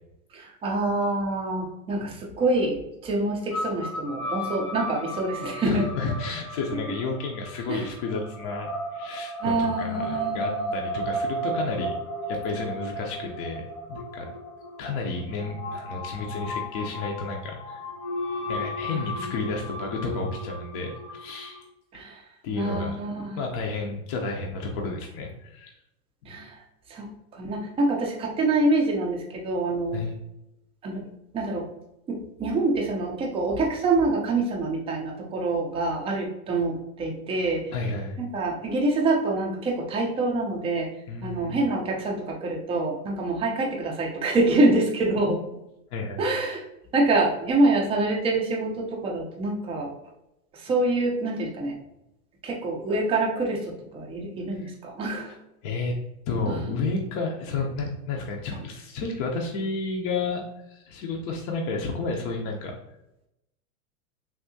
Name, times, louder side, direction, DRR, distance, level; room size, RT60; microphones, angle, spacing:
voice 1, 0.3-5.8 7.7-7.8 9.4-10.6 18.9-19.3 21.9-22.2 22.6-23.4 26.3-26.6 26.9-30.0 30.8-31.0 31.3-31.6 32.1-37.6 38.2-40.9 41.2-45.4 46.2-46.6 46.9-49.9 50.6-51.8 52.4-55.3 56.5-56.6, right 2 dB, 15° right, 0 dB, 0.4 m, -26 dB
sound 1, 3.5-21.7, equal, 85° left, 1.4 m, -34 dB
voice 2, 5.6-12.0 12.3-14.3 14.8-17.8 18.5-21.6 21.9-22.0 22.4-23.0 23.4-25.7 26.2-26.3 29.9-30.1 37.7-38.2 41.1-41.6 45.9-46.2 54.6-54.7 55.3-55.4 55.6-56.0 56.3-62.8, left 3 dB, 40° left, 0 dB, 0.6 m, -31 dB
3.5 x 2.7 x 2.6 m, 0.85 s
hypercardioid pair, 125°, 44 cm